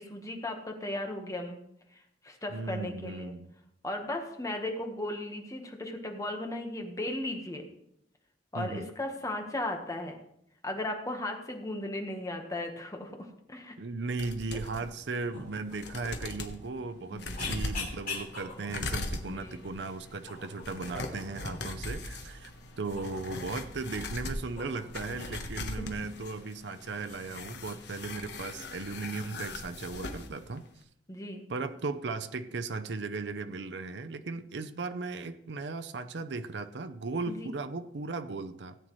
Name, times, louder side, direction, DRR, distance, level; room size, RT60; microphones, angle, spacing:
voice 1, 0.0-1.6 1.9-3.3 3.8-7.7 8.5-10.2 10.6-13.8 14.5-14.6 17.1-17.6 19.2-19.6 25.8-25.9 31.1-31.5 37.3-37.5, left 1 dB, 20° left, 3 dB, 1.3 m, -36 dB
voice 2, 2.5-3.5 8.5-8.9 13.8-22.5 22.8-30.6 31.5-38.8, right 3 dB, 70° right, 9 dB, 0.6 m, -37 dB
sound 1, 14.2-14.8 15.4-15.5 15.7-16.6 17.2-30.3 30.6-30.7, left 2 dB, 65° left, 1.2 m, -40 dB
sound 2, 15.1-25.1, left 4 dB, 50° left, 3.7 m, -46 dB
17.0 x 8.9 x 3.1 m, 0.76 s
head